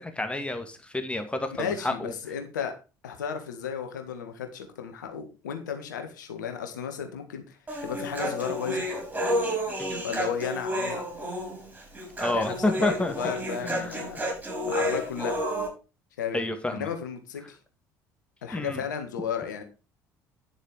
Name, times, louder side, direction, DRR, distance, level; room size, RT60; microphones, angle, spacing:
voice 1, 0.0-2.1 9.8-9.9 12.2-13.1 13.6-13.9 16.3-16.9 18.5-18.8, left 2 dB, 10° left, 7 dB, 2.1 m, -29 dB
voice 2, 1.6-2.7 3.0-8.9 10.0-11.1 12.3-14.2 14.6-15.4 16.2-16.4 16.7-17.6 18.4-19.6, left 7 dB, 75° left, 7 dB, 1.8 m, -34 dB
Human voice, 7.7-15.7, equal, 20° right, 6.5 m, -30 dB
10.0 x 7.3 x 5.0 m, 0.31 s
figure-of-eight pair, 55°, 10 cm